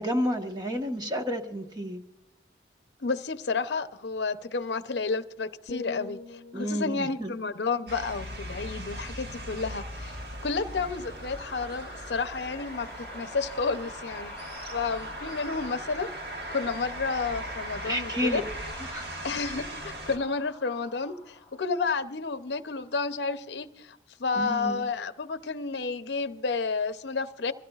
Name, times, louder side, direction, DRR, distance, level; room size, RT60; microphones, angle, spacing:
voice 1, 0.0-2.0 6.5-7.3 17.8-18.4 18.9-19.1 24.3-24.8, equal, 20° right, 1.3 m, -30 dB
voice 2, 3.0-14.3 14.7-16.1 16.5-18.4 19.2-27.5, left 4 dB, 65° left, 0.7 m, -31 dB
sound 1, 5.7-9.7 10.0-10.4, left 3 dB, 50° left, 1.0 m, -45 dB
sound 2, 7.9-20.2, right 1 dB, 60° right, 1.7 m, -39 dB
sound 3, 11.0-22.3, left 2 dB, 10° left, 2.8 m, -46 dB
24.5 x 16.5 x 2.4 m
head